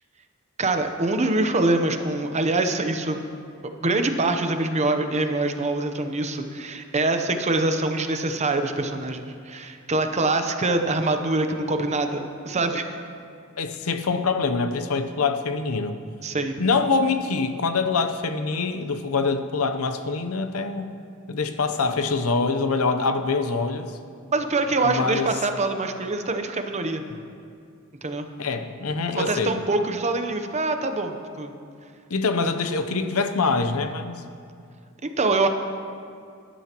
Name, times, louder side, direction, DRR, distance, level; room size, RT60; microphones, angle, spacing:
voice 1, 0.6-3.2 3.8-13.0 16.2-16.5 24.3-27.0 28.0-28.3 29.2-31.5 35.0-35.5, right 2 dB, 30° right, 6 dB, 0.7 m, -24 dB
voice 2, 13.6-16.0 16.6-20.9 21.3-24.0 24.8-25.3 28.4-29.6 32.1-34.2, left 4 dB, 75° left, 9 dB, 0.7 m, -24 dB
18.0 x 11.0 x 3.0 m, 2.4 s
head